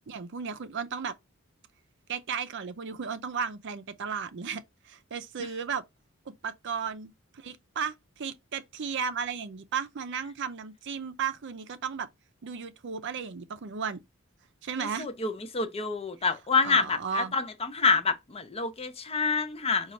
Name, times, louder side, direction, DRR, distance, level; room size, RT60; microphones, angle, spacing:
voice 1, 0.1-1.1 2.1-5.8 6.3-12.1 12.4-14.0 14.6-15.1 16.6-17.4, right 6 dB, 55° right, 0.5 m, -34 dB
voice 2, 14.8-19.9, left 4 dB, 25° left, 0.6 m, -27 dB
5.1 x 2.4 x 4.2 m
head